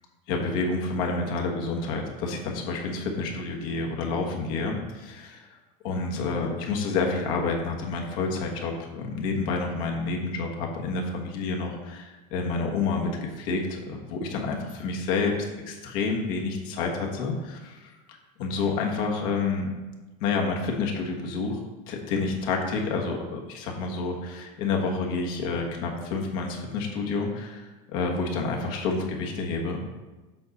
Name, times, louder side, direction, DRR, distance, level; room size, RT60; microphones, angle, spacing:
voice 1, 0.3-5.5 5.8-15.3 15.7-19.7 20.2-21.6 21.9-29.8, left 4 dB, 65° left, 1 dB, 1.4 m, -29 dB
7.7 x 5.4 x 4.2 m, 1.2 s
supercardioid pair, 155°, 20 cm